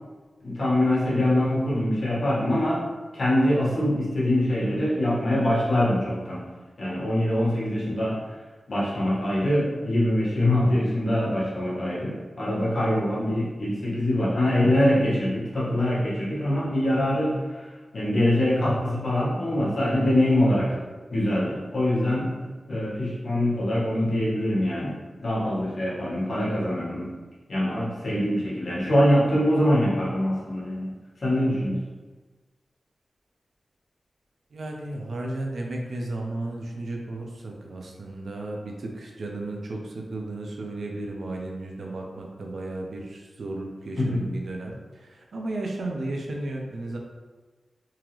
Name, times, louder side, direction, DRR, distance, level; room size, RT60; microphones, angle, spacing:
voice 1, 0.4-2.8 3.1-6.4 6.8-8.2 8.7-17.6 17.9-20.8 21.1-22.3 22.7-27.1 27.5-30.9 31.2-31.8 44.0-44.2, left 1 dB, 60° left, -7 dB, 1.4 m, -24 dB
voice 2, 34.5-47.0, right 2 dB, 80° right, 0 dB, 0.6 m, -34 dB
3.7 x 2.9 x 3.1 m, 1.3 s
wide cardioid pair, 95°, 0 cm